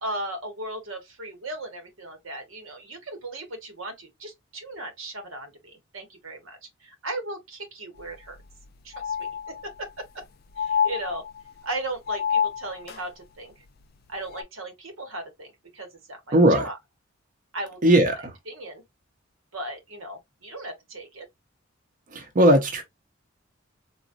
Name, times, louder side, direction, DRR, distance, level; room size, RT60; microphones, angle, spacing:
voice 1, 0.0-8.4 8.8-9.1 9.5-10.2 10.6-11.3 11.6-13.5 14.1-16.8 17.5-17.8 18.1-18.8 19.5-21.3, right 1 dB, 85° right, 1.1 m, -37 dB
sound 1, 8.0-8.1 8.4-8.5 8.9-9.9 10.6-11.6 12.1-13.0 14.3-14.4, left 7 dB, 50° left, 0.3 m, -28 dB
voice 2, 16.3-16.6 17.8-18.3 22.1-22.8, right 1 dB, 40° right, 0.7 m, -18 dB
3.9 x 2.2 x 2.4 m
head